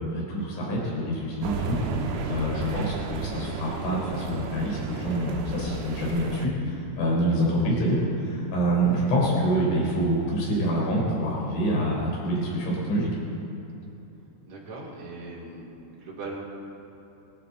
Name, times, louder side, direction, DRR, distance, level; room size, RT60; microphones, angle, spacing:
voice 1, 0.0-1.8 2.3-6.5 7.0-8.0 8.3-13.1, right 1 dB, 75° left, -4 dB, 6.0 m, -26 dB
sound 1, 1.4-6.5, right 4 dB, 75° right, 2.5 m, -33 dB
voice 2, 14.4-15.7 15.9-16.4, right 3 dB, 40° right, -5 dB, 3.6 m, -39 dB
24.0 x 11.5 x 4.0 m, 3.0 s
omnidirectional pair, 5.4 m